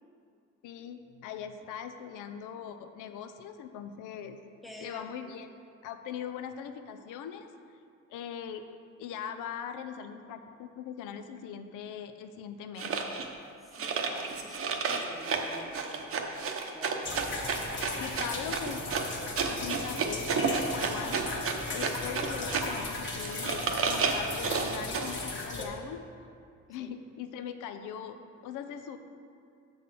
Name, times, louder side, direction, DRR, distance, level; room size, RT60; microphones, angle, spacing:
voice 1, 0.6-4.4 4.8-5.5 5.8-7.5 8.1-8.7 9.0-13.0 18.0-18.8 19.4-21.4 21.7-26.0 26.7-28.2 28.4-29.0, left 8 dB, 90° left, 8 dB, 0.5 m, -41 dB
voice 2, 4.6-5.3 13.8-16.2 16.6-17.3 26.8-26.9, equal, ahead, 0 dB, 0.8 m, -48 dB
sound 1, 12.8-13.3 13.7-22.8 23.2-25.2, right 5 dB, 50° right, 0.7 m, -31 dB
sound 2, 17.0-25.7, left 3 dB, 40° left, 1.3 m, -37 dB
6.8 x 4.0 x 6.4 m, 2.4 s
cardioid pair, 90°, 30 cm